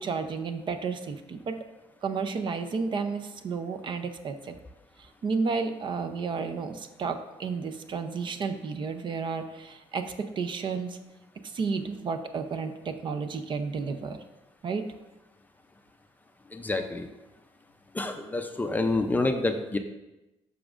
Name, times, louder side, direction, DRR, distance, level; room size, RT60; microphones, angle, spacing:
voice 1, 0.0-1.6 2.0-4.6 5.2-11.0 11.5-14.2 14.6-14.9, right 5 dB, 40° right, 8 dB, 0.5 m, -32 dB
voice 2, 16.5-17.1 17.9-19.8, left 2 dB, 15° left, 5 dB, 0.4 m, -28 dB
10.0 x 6.1 x 2.4 m, 1.0 s
cardioid pair, 140°, 12 cm